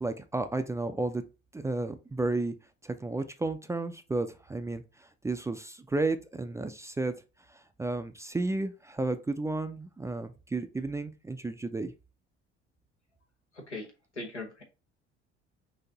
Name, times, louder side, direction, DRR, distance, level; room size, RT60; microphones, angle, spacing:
voice 1, 0.0-1.2 1.5-2.5 2.8-7.1 7.5-11.9, right 2 dB, 10° right, 0.4 m, -32 dB
voice 2, 13.5-14.6, left 2 dB, 90° left, 1.0 m, -40 dB
5.9 x 2.6 x 2.9 m
figure-of-eight pair, 60°, 34 cm